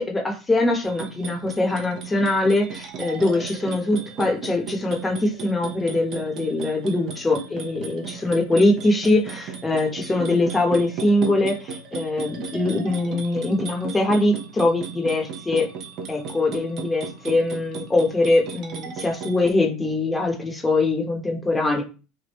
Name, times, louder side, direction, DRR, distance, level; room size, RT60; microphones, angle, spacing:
voice 1, 0.0-15.7 16.1-21.8, left 2 dB, 15° left, 2 dB, 1.0 m, -22 dB
sound 1, 0.8-19.5, right 5 dB, 50° right, 0.8 m, -36 dB
3.3 x 2.5 x 3.1 m, 0.32 s
supercardioid pair, 110°, 0 cm